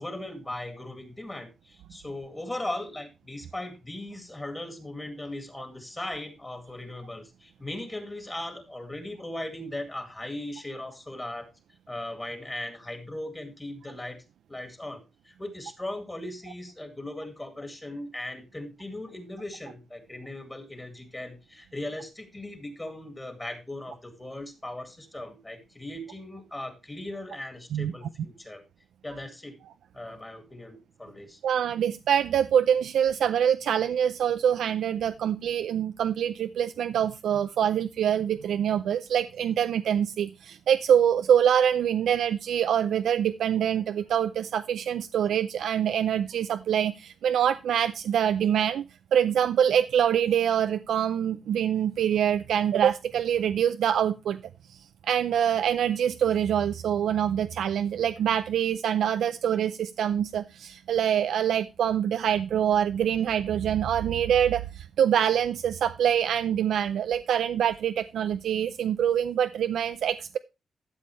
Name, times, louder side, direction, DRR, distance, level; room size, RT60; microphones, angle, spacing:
voice 1, 0.0-11.5 11.9-14.2 14.5-28.6 29.0-29.6 29.9-31.4, left 1 dB, 15° left, 2.2 m, -38 dB
voice 2, 31.4-48.8 49.1-54.4 54.7-54.8 55.1-70.4, right 9 dB, 85° right, 0.5 m, -25 dB
12.5 x 7.4 x 3.1 m
wide cardioid pair, 145°, 0 cm